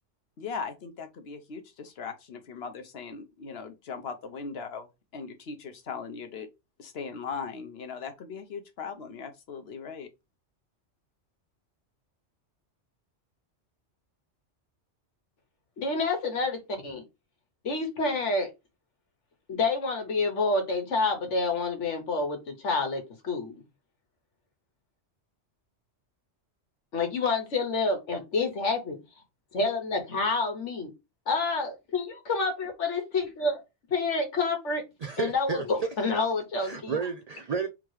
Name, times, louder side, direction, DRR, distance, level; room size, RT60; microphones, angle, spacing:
voice 1, 0.4-6.5 6.8-10.1, left 5 dB, 60° left, 1.1 m, -39 dB
voice 2, 15.8-17.0 17.6-18.5 19.5-23.6 26.9-29.0 29.5-30.9 31.3-33.6 33.9-34.8 35.2-37.0, left 3 dB, 80° left, 1.6 m, -28 dB
voice 3, 35.0-35.6 36.6-37.7, right 5 dB, 70° right, 0.3 m, -32 dB
3.7 x 3.0 x 4.7 m
omnidirectional pair, 1.2 m